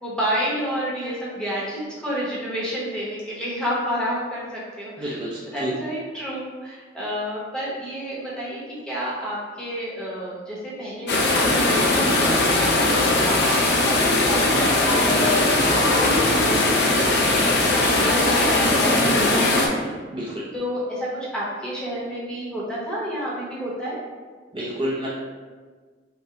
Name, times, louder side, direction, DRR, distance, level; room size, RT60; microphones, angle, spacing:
voice 1, 0.0-5.1 5.5-12.2 12.6-19.8 20.5-24.0, equal, 5° left, -7 dB, 0.9 m, -30 dB
voice 2, 5.0-5.7 20.1-20.4 24.5-25.1, equal, 25° right, -8 dB, 0.6 m, -29 dB
sound 1, 11.1-19.7, left 2 dB, 60° left, 0.5 m, -19 dB
5.9 x 2.2 x 2.8 m, 1.5 s
head